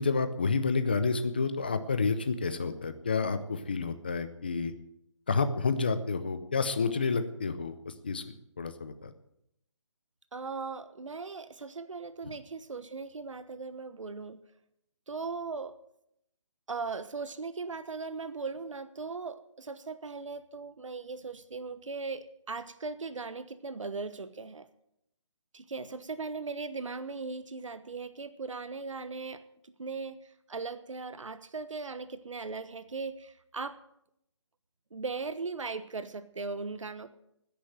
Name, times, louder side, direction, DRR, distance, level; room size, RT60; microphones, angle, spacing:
voice 1, 0.0-4.7 5.3-9.1, left 4 dB, 20° left, 10 dB, 0.6 m, -30 dB
voice 2, 10.3-14.4 15.1-15.8 16.7-24.7 25.5-33.8 34.9-37.1, right 4 dB, 80° right, 12 dB, 1.2 m, -38 dB
13.0 x 10.0 x 7.8 m, 0.77 s
hypercardioid pair, 175°, 16 cm